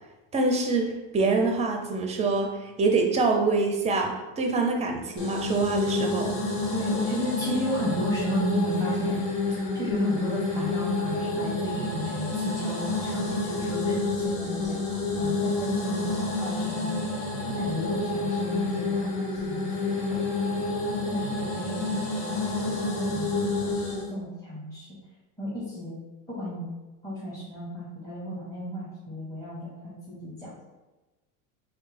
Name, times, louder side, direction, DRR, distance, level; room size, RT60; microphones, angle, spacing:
voice 1, 0.3-6.3, right 3 dB, 15° right, 3 dB, 0.5 m, -25 dB
sound 1, 5.2-24.1, left 3 dB, 85° left, 1.0 m, -29 dB
voice 2, 6.7-9.2 9.5-16.9 17.6-19.2 19.5-20.7 21.0-24.9 25.4-26.0 26.3-26.7 27.0-30.5, left 1 dB, 10° left, -8 dB, 1.0 m, -33 dB
4.3 x 2.0 x 3.3 m, 1.1 s
supercardioid pair, 115°, 41 cm